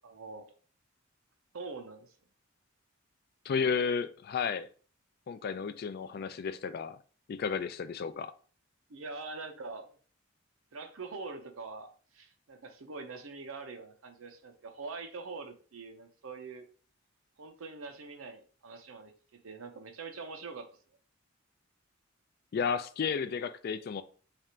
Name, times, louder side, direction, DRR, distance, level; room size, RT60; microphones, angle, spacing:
voice 1, 0.0-0.5 1.5-2.1 6.1-6.2 8.9-10.0 10.7-16.7 17.4-20.7, right 4 dB, 85° right, 0.7 m, -44 dB
voice 2, 3.4-4.7 5.3-7.0 7.3-8.3 22.5-24.0, left 6 dB, 50° left, 0.3 m, -32 dB
3.3 x 2.5 x 4.2 m
head